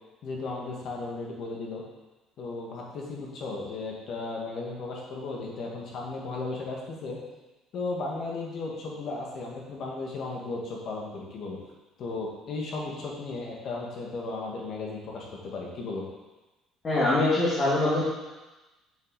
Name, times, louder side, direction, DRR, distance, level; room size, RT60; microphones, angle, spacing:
voice 1, 0.2-1.8 2.4-7.2 7.7-11.6 12.0-16.0, left 3 dB, 45° left, -2 dB, 2.0 m, -35 dB
voice 2, 16.8-18.0, left 2 dB, 25° left, -10 dB, 2.4 m, -23 dB
7.9 x 7.1 x 4.2 m, 1.1 s
cardioid pair, 160°, 0 cm